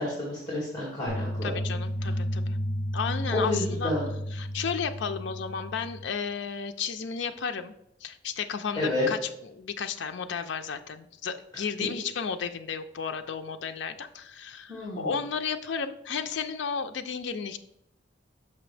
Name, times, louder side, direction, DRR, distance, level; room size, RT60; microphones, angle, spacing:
voice 1, 0.0-1.5 3.3-4.0 8.8-9.1 11.8-11.9 14.7-15.1, left 1 dB, 20° left, -6 dB, 1.7 m, -29 dB
sound 1, 1.1-6.1, equal, 65° right, 1.1 m, -32 dB
voice 2, 1.4-2.6 2.9-3.9 4.3-7.7 8.0-17.6, left 6 dB, 75° left, 7 dB, 0.4 m, -33 dB
6.0 x 5.4 x 3.3 m, 0.77 s
head